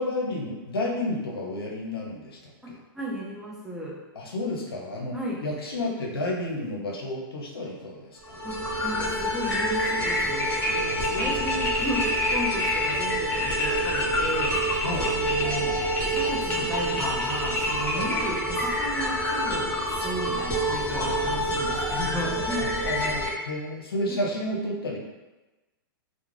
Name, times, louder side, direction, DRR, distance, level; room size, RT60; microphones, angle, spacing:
voice 1, 0.0-2.4 2.7-2.8 4.2-5.2 5.4-8.4 10.9-11.6 14.8-15.1 17.9-18.1 20.9-21.4 22.6-25.0, left 1 dB, 85° left, -1 dB, 0.6 m, -31 dB
voice 2, 2.6-4.0 5.1-5.4 8.4-15.8 16.1-22.8 24.1-24.2, equal, 5° right, -4 dB, 0.5 m, -34 dB
sound 1, 8.2-23.3, equal, 10° left, 0.9 m, -26 dB
2.3 x 2.1 x 3.1 m, 1.1 s
hypercardioid pair, 120°, 12 cm